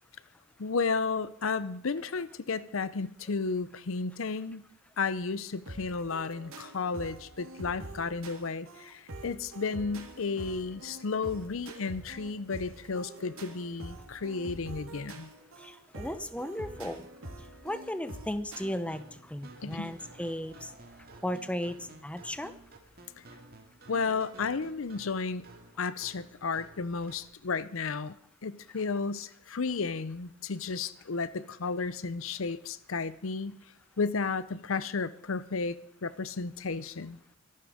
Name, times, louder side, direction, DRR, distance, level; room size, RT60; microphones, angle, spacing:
voice 1, 0.6-4.6 5.0-15.3 19.6-19.9 23.9-25.4 25.8-28.2 28.4-33.6 34.0-37.2, left 4 dB, 70° left, 16 dB, 0.7 m, -33 dB
sound 1, 5.7-18.6, right 1 dB, 80° right, 3.3 m, -46 dB
voice 2, 15.6-17.0 17.6-20.7 21.2-22.5, left 1 dB, 5° left, 11 dB, 0.9 m, -35 dB
sound 2, 18.6-27.3, right 2 dB, 45° right, 2.2 m, -53 dB
23.5 x 11.5 x 5.0 m, 0.76 s
head